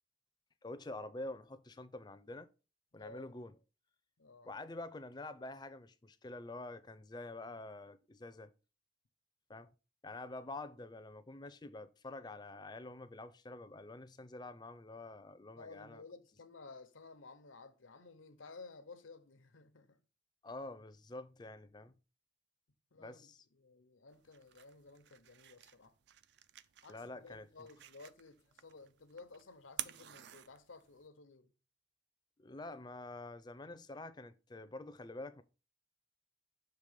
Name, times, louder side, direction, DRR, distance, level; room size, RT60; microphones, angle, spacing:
voice 1, 0.6-2.5 2.9-3.5 4.4-8.5 9.5-9.7 10.0-16.0 20.4-21.9 23.0-23.4 26.9-27.7 32.4-35.4, left 2 dB, 20° left, 0.4 m, -47 dB
voice 2, 2.9-3.4 4.2-4.5 15.5-20.0 22.9-26.0 26.8-31.5, left 3 dB, 85° left, 0.8 m, -55 dB
sound 1, 24.1-31.1, right 12 dB, 60° right, 0.4 m, -50 dB
6.7 x 3.3 x 5.0 m
head